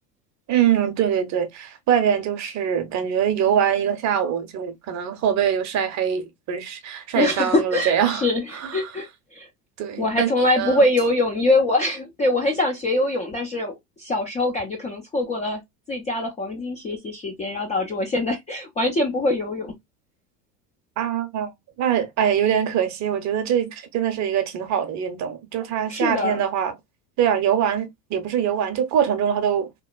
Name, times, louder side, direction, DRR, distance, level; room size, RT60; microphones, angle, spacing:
voice 1, 0.5-8.3 8.5-8.9 9.8-10.3 10.6-10.8 21.0-21.5 21.8-26.7 27.2-29.7, right 9 dB, 35° right, 0.7 m, -23 dB
voice 2, 7.2-9.5 10.0-15.6 15.9-19.7 25.9-26.4, left 2 dB, 15° left, 0.3 m, -23 dB
2.9 x 2.0 x 2.3 m
hypercardioid pair, 90°, 47 cm